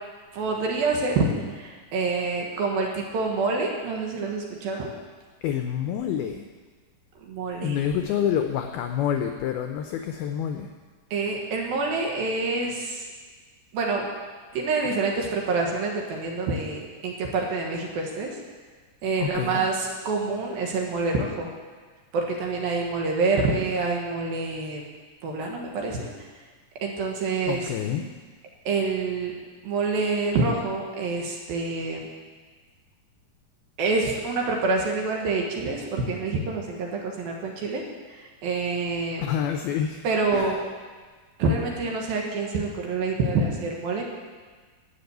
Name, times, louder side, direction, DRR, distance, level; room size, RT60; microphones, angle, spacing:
voice 1, 0.3-1.3 1.6-4.9 7.2-7.8 11.1-13.0 13.7-14.0 14.5-18.3 19.0-21.5 22.1-24.8 25.2-26.1 26.8-27.7 28.7-29.3 29.6-32.1 33.8-37.8 38.4-39.2 40.0-40.6 41.4-44.0, right 3 dB, 65° right, 0 dB, 2.8 m, -27 dB
voice 2, 5.4-6.5 7.6-10.7 19.2-19.7 27.5-28.1 39.2-40.0 40.3-40.6, left 9 dB, 90° left, 5 dB, 2.1 m, -27 dB
12.5 x 8.7 x 8.0 m, 1.5 s
omnidirectional pair, 5.2 m